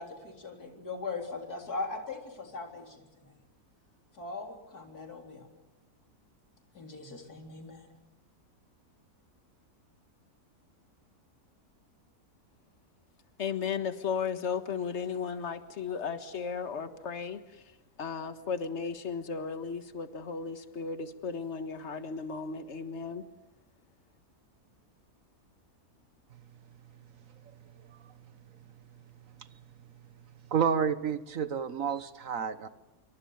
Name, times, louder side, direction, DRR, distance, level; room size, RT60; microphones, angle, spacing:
voice 1, 0.0-3.3 4.1-5.5 6.7-7.9, left 3 dB, 90° left, 3 dB, 4.2 m, -40 dB
voice 2, 13.4-17.4 18.0-23.2, left 6 dB, 50° left, 10 dB, 1.8 m, -35 dB
voice 3, 30.5-32.7, right 7 dB, 60° right, 13 dB, 1.5 m, -30 dB
27.0 x 24.0 x 7.1 m, 1.0 s
omnidirectional pair, 1.6 m